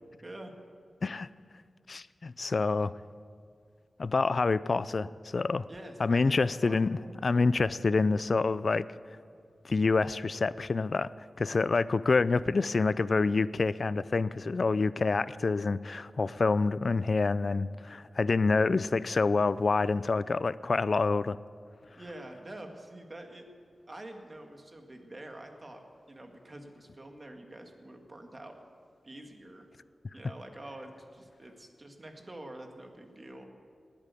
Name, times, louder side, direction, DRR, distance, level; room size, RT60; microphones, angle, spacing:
voice 1, 0.2-0.5 5.7-7.2 22.0-23.5 23.9-28.6 29.0-29.7 30.1-33.5, right 1 dB, 30° right, 4 dB, 1.9 m, -46 dB
voice 2, 1.9-2.9 4.0-5.7 6.0-8.9 9.6-11.1 11.4-21.4, left 4 dB, 50° left, 17 dB, 0.4 m, -27 dB
19.5 x 8.7 x 8.4 m, 2.3 s
wide cardioid pair, 105°, 0 cm